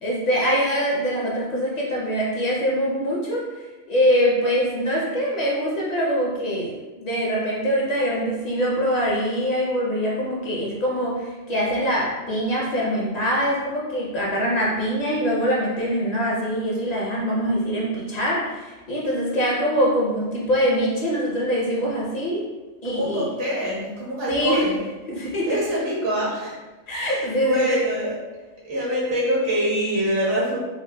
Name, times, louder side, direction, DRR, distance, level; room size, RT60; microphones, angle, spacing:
voice 1, 0.0-22.5 22.8-23.3 24.3-24.6 25.1-25.6 26.9-27.8, equal, 45° left, -4 dB, 0.6 m, -23 dB
voice 2, 22.8-24.8 25.5-26.6 27.0-28.1 28.6-30.6, equal, 75° right, -6 dB, 1.5 m, -25 dB
4.6 x 2.1 x 2.2 m, 1.2 s
omnidirectional pair, 1.4 m